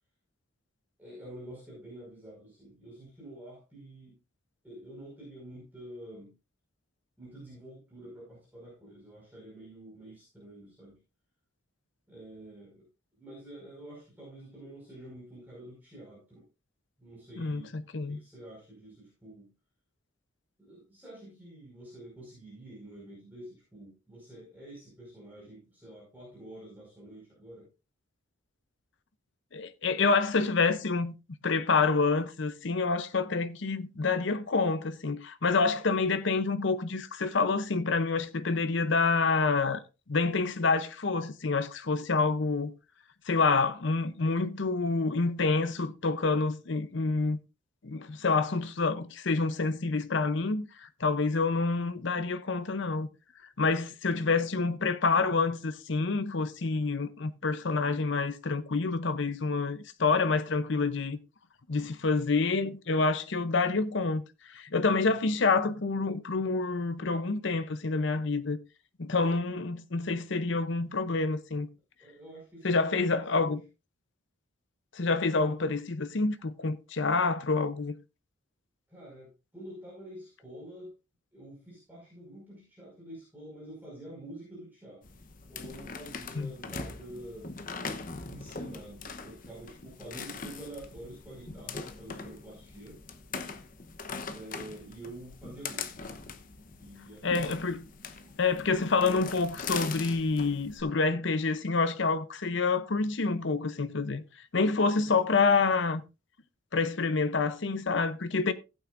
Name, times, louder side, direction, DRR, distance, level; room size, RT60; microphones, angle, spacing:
voice 1, 1.0-4.2 4.6-6.3 7.2-11.0 12.1-12.8 13.2-16.4 17.0-17.8 18.1-19.5 20.6-27.7 54.1-54.3 65.1-65.2 72.0-73.5 78.9-81.0 81.3-85.0 85.5-87.5 88.3-93.0 94.3-95.9 96.8-97.4 98.0-98.3, right 1 dB, 10° right, 5.3 m, -48 dB
voice 2, 17.4-18.2 29.5-31.1 31.4-39.8 40.1-42.7 43.3-47.4 47.8-53.1 53.6-61.2 61.7-68.6 69.0-71.7 72.6-73.6 74.9-77.9 86.4-86.5 97.2-97.9 98.4-104.2 104.5-106.0 106.7-108.5, left 4 dB, 60° left, 0.7 m, -27 dB
sound 1, 85.0-100.8, left 4 dB, 40° left, 0.9 m, -41 dB
16.0 x 8.8 x 2.6 m
head